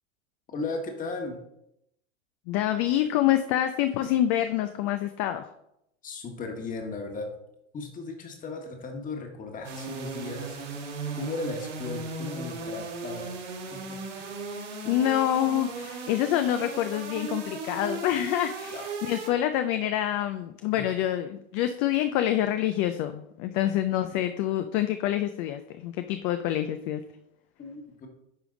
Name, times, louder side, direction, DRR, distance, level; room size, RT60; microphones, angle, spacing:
voice 1, 0.5-1.4 6.0-7.3 7.7-10.6 11.1-13.3 13.9-14.4 14.8-15.0 18.7-18.8 20.7-20.9 27.6-28.1, left 3 dB, 25° left, 3 dB, 1.4 m, -36 dB
voice 2, 2.5-5.5 14.9-27.0, left 12 dB, 40° left, 9 dB, 0.5 m, -27 dB
sound 1, 9.6-19.3, right 3 dB, 80° right, 1.8 m, -37 dB
10.0 x 3.4 x 3.8 m, 0.80 s
hypercardioid pair, 120°, 35 cm